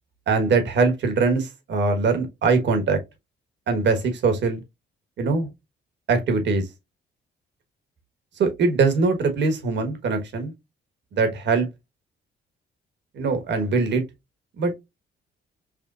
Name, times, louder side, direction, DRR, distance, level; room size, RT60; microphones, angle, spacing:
voice 1, 0.3-3.0 3.7-4.6 5.2-5.5 6.1-6.6 8.4-10.5 11.1-11.7 13.1-14.0 14.6-14.7, right 4 dB, 65° right, 1.4 m, -22 dB
6.3 x 2.2 x 2.4 m
cardioid pair, 90°, 20 cm